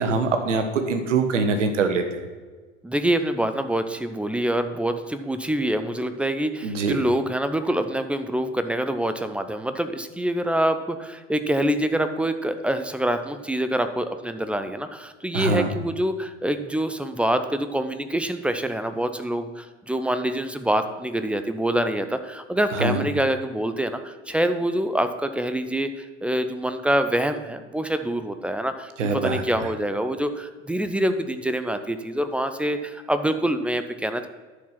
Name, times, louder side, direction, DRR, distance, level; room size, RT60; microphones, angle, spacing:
voice 1, 0.0-2.0 6.6-7.0 15.3-15.7 22.8-23.0 29.0-29.4, right 4 dB, 75° right, 7 dB, 1.2 m, -23 dB
voice 2, 2.8-34.3, right 1 dB, 5° right, 9 dB, 0.4 m, -25 dB
10.5 x 4.9 x 5.7 m, 1.4 s
figure-of-eight pair, 80°, 37 cm